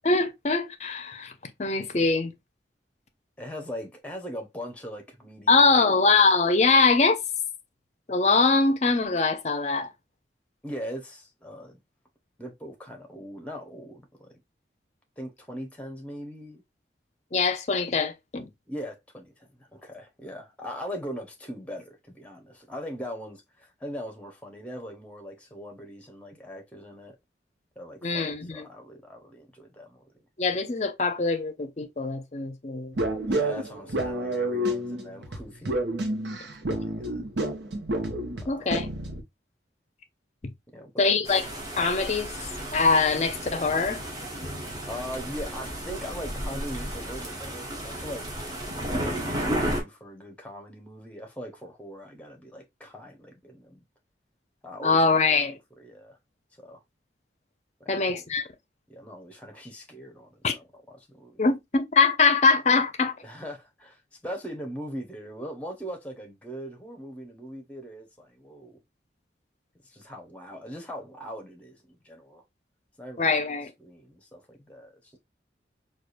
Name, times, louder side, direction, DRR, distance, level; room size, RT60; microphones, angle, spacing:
voice 1, 0.0-1.3 1.6-2.3 5.5-7.2 8.1-9.9 17.3-18.5 28.0-28.6 30.4-33.0 38.5-38.9 41.0-41.4 41.8-42.3 42.7-44.0 54.8-55.6 57.9-58.5 60.4-60.5 61.4-63.1 73.2-73.7, left 4 dB, 40° left, 0.5 m, -23 dB
voice 2, 3.4-6.2 10.6-11.8 12.4-14.3 15.2-16.6 18.7-27.2 27.8-30.0 33.3-35.8 36.6-37.3 38.4-38.8 40.7-41.2 44.9-48.3 48.8-53.8 54.6-55.2 55.4-56.2 56.6-56.8 57.8-58.2 58.9-61.5 63.2-68.8 69.8-72.4 73.0-73.4 73.8-75.2, equal, 10° left, 0.8 m, -40 dB
sound 1, 33.0-39.2, right 1 dB, 80° right, 0.8 m, -29 dB
sound 2, 41.2-49.8, right 1 dB, 20° right, 1.1 m, -33 dB
4.7 x 2.4 x 2.4 m
head